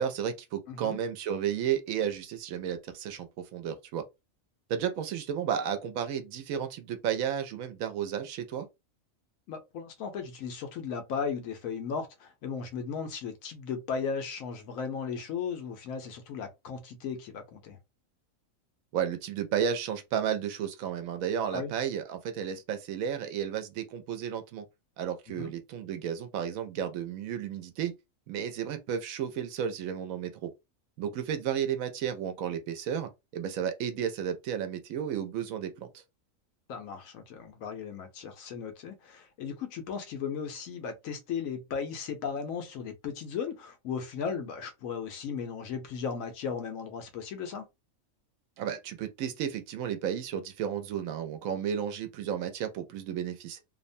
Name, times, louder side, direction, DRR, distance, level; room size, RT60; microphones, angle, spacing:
voice 1, 0.0-4.0 4.7-8.7 18.9-24.7 25.0-27.9 28.3-30.5 31.0-36.0 48.6-53.6, right 8 dB, 85° right, 1.0 m, -33 dB
voice 2, 0.7-1.0 9.5-17.8 21.5-21.7 25.3-25.5 36.7-47.7, left 6 dB, 90° left, 1.1 m, -36 dB
2.8 x 2.1 x 2.6 m
omnidirectional pair, 1.4 m